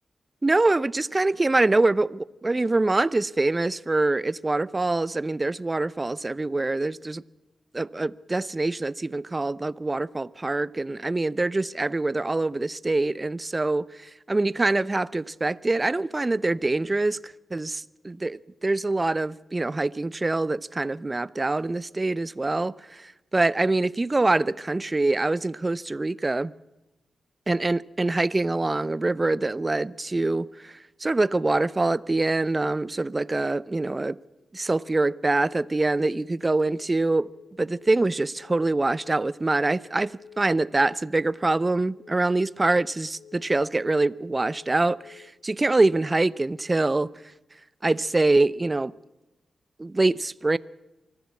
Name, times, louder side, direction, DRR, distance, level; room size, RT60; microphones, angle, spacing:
voice 1, 0.4-7.2 7.7-26.5 27.5-34.2 34.5-37.3 37.6-47.1 47.8-48.9 49.8-50.6, right 2 dB, 30° right, 0.6 m, -25 dB
Telephone, 35.4-35.7 36.0-36.3 36.6-36.9 37.2-37.5 37.8-38.1 38.4-38.7 39.0-39.3 39.6-39.9 40.2-40.5 40.8-41.1 41.4-41.7 42.0-42.3 42.6-42.9 43.2-43.5 43.8-44.1 44.4-44.7 45.0-45.3 45.6-45.9, left 8 dB, 40° left, 7.9 m, -51 dB
24.0 x 14.5 x 8.4 m
cardioid pair, 50°, 0 cm